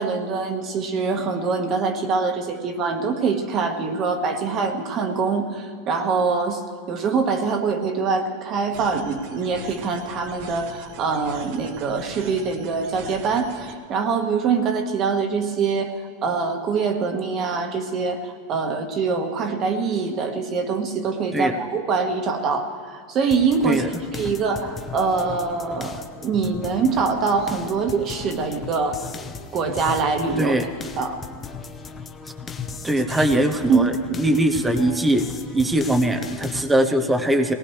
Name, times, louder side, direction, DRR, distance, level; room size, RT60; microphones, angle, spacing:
voice 1, 0.0-6.6 6.9-15.9 16.2-23.8 24.1-29.1 29.5-30.5 31.0-31.2 33.1-33.2 33.7-33.9, right 5 dB, 30° right, 5 dB, 1.5 m, -24 dB
sound 1, 8.7-13.7, right 4 dB, 45° right, 1.3 m, -41 dB
sound 2, 23.3-36.6, left 5 dB, 15° left, 0.7 m, -37 dB
voice 2, 32.8-37.5, right 1 dB, 5° right, 6 dB, 0.9 m, -21 dB
23.0 x 19.0 x 3.3 m, 2.2 s
supercardioid pair, 165°, 0 cm